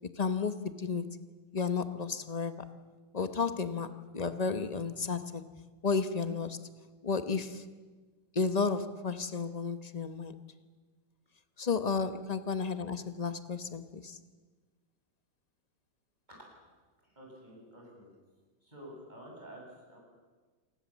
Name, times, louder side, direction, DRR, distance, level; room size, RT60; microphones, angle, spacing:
voice 1, 0.1-1.2 1.5-2.7 3.1-5.5 5.8-6.6 7.0-7.6 8.3-10.4 11.6-14.2, left 5 dB, 30° left, 11 dB, 0.8 m, -32 dB
voice 2, 17.0-18.1 18.6-20.0, equal, 20° right, -1 dB, 7.6 m, -50 dB
28.5 x 20.0 x 7.3 m, 1.3 s
omnidirectional pair, 2.1 m